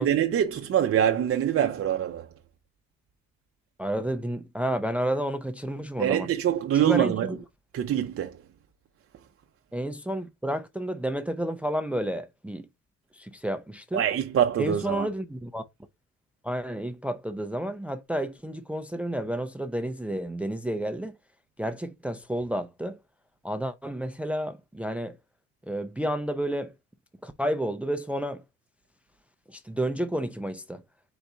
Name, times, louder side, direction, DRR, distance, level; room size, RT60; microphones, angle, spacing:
voice 1, 0.0-2.3 6.0-7.3 7.7-8.4 13.9-15.1, right 10 dB, 50° right, 0.6 m, -24 dB
voice 2, 3.8-6.3 6.7-7.4 9.7-12.7 13.1-14.0 14.6-15.6 16.4-21.1 21.6-23.0 23.4-25.2 25.7-26.7 27.2-28.4 29.5-30.8, right 1 dB, 5° right, 0.5 m, -31 dB
4.0 x 3.9 x 3.3 m
cardioid pair, 90°, 30 cm